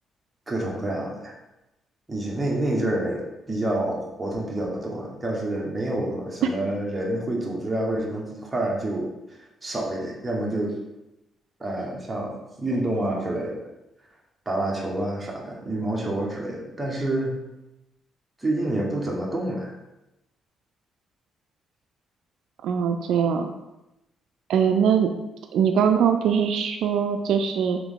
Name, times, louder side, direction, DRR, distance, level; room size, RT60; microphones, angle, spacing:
voice 1, 0.5-1.3 2.1-9.1 9.6-10.8 11.6-13.6 14.5-17.4 18.4-19.7, right 1 dB, 20° right, -2 dB, 1.1 m, -28 dB
voice 2, 22.6-23.5 24.5-25.1 25.5-27.8, right 7 dB, 80° right, 5 dB, 0.3 m, -21 dB
3.5 x 3.5 x 3.7 m, 0.94 s
cardioid pair, 90°, 0 cm